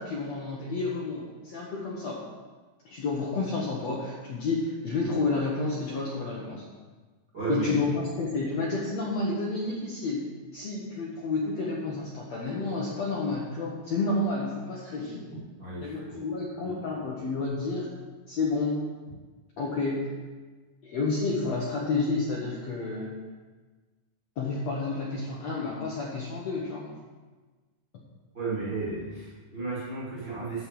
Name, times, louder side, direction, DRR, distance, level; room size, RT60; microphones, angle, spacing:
voice 1, 0.0-2.2 2.9-6.6 7.5-10.3 10.5-15.3 15.8-17.9 18.3-18.8 19.6-20.1 20.8-23.1 24.4-26.9, left 3 dB, 60° left, -4 dB, 1.9 m, -30 dB
voice 2, 7.3-7.7 15.3-16.2 16.6-16.8 28.3-30.7, right 4 dB, 30° right, -8 dB, 2.9 m, -34 dB
10.5 x 4.7 x 7.6 m, 1.3 s
omnidirectional pair, 4.4 m